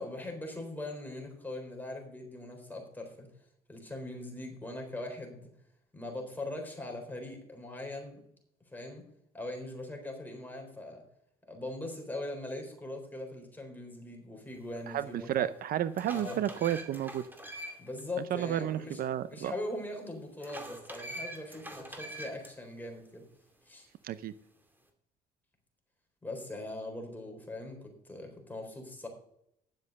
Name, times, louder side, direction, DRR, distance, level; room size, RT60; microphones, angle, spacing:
voice 1, 0.0-3.3 3.7-5.5 5.9-8.2 8.7-9.0 9.3-11.0 11.5-15.5 16.1-16.4 17.8-19.0 19.3-23.3 23.6-23.9 26.2-29.1, left 2 dB, 10° left, 2 dB, 4.0 m, -41 dB
voice 2, 14.9-17.3 18.3-19.5 24.0-24.3, right 11 dB, 60° right, 14 dB, 0.6 m, -32 dB
sound 1, 15.0-15.1 15.6-18.0 18.4-18.5 20.4-22.5, right 1 dB, 10° right, 2.3 m, -44 dB
10.5 x 7.4 x 6.6 m, 0.75 s
cardioid pair, 110°, 17 cm